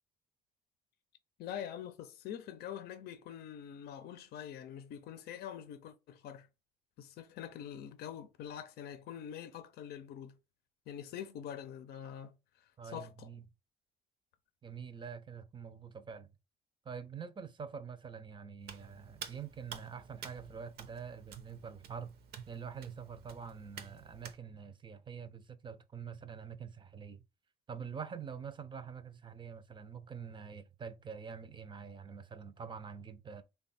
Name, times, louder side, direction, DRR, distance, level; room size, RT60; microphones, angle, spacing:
voice 1, 1.4-6.5 7.0-10.3 10.9-12.4 12.8-13.3, left 9 dB, 70° left, 0.6 m, -45 dB
voice 2, 12.8-13.5 14.6-16.3 16.8-22.1 22.5-27.2 27.7-33.4, right 6 dB, 30° right, 0.5 m, -46 dB
Hands, 18.6-24.4, right 7 dB, 70° right, 0.7 m, -50 dB
3.4 x 2.3 x 4.0 m
cardioid pair, 110°, 17 cm